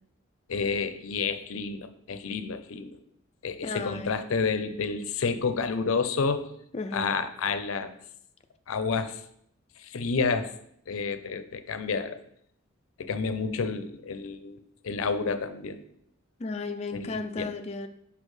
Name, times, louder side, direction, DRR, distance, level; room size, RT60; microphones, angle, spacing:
voice 1, 0.5-3.0 3.4-6.5 6.9-7.9 8.7-9.2 9.8-10.5 10.9-12.2 13.0-14.6 14.8-15.8 16.9-17.5, left 4 dB, 85° left, 10 dB, 0.5 m, -30 dB
voice 2, 3.6-4.1 6.7-7.1 16.4-17.9, left 3 dB, 30° left, 7 dB, 0.4 m, -34 dB
6.4 x 5.6 x 3.2 m, 0.71 s
head